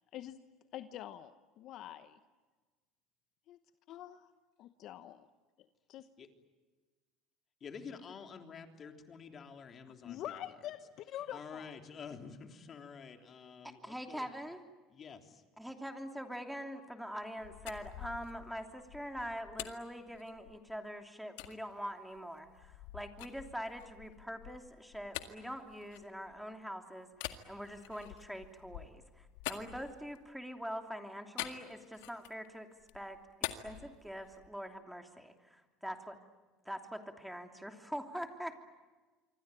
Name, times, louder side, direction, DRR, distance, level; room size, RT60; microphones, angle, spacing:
voice 1, 0.7-2.2 3.5-3.6 3.9-4.3 4.6-5.3 5.6-6.1 10.0-11.8, left 12 dB, 55° left, 11 dB, 1.0 m, -46 dB
voice 2, 7.6-10.2 11.3-14.3 14.9-15.4, left 6 dB, 40° left, 5 dB, 3.4 m, -49 dB
voice 3, 13.6-14.6 15.6-32.7 32.9-33.2 33.6-36.2 36.6-38.6, equal, ahead, 5 dB, 3.0 m, -44 dB
sound 1, 17.2-20.7 21.4-21.6 22.1-26.5 27.1-30.4 31.4-32.5 32.8-34.6, left 15 dB, 80° left, 1.9 m, -46 dB
26.5 x 24.5 x 9.1 m, 1.3 s
supercardioid pair, 95°, 0 cm